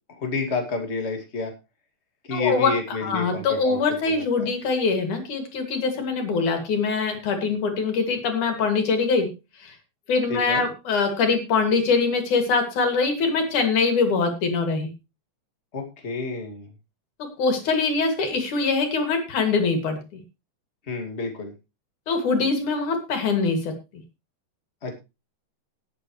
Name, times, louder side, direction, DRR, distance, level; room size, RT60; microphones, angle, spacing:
voice 1, 0.1-1.5 2.3-3.8 4.1-4.5 10.3-10.6 15.7-16.7 20.9-21.5 24.8-25.0, left 4 dB, 20° left, 3 dB, 2.5 m, -29 dB
voice 2, 2.3-2.7 3.0-9.3 9.6-9.7 10.1-14.9 17.4-20.0 22.1-23.7, left 4 dB, 85° left, 5 dB, 4.1 m, -23 dB
19.0 x 7.9 x 3.3 m, 0.27 s
omnidirectional pair, 3.4 m